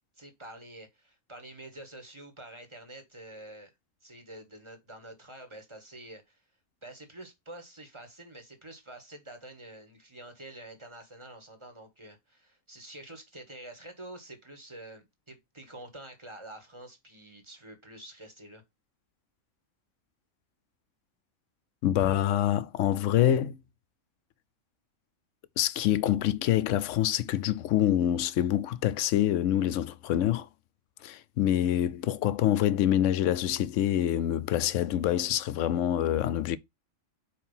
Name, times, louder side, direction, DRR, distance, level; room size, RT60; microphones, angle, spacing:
voice 1, 0.1-3.7 4.0-6.4 6.8-18.6, right 1 dB, 20° right, 1.5 m, -47 dB
voice 2, 21.8-23.6 25.6-30.5 31.0-36.6, left 11 dB, 70° left, 0.8 m, -26 dB
4.6 x 4.5 x 5.5 m
omnidirectional pair, 1.4 m